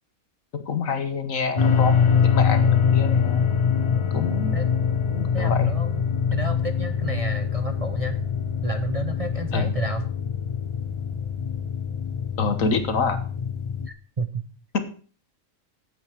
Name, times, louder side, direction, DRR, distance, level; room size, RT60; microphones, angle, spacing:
voice 1, 0.5-3.5 4.1-4.6 5.1-5.8 9.5-9.7 12.4-13.2 14.7-14.8, left 5 dB, 70° left, 9 dB, 1.6 m, -26 dB
sound 1, 1.6-13.9, left 6 dB, 30° left, 0.6 m, -24 dB
voice 2, 5.3-6.0 6.3-8.2 8.6-10.1 13.9-14.4, right 3 dB, 35° right, 7 dB, 0.6 m, -31 dB
8.8 x 8.6 x 6.1 m, 0.41 s
omnidirectional pair, 1.4 m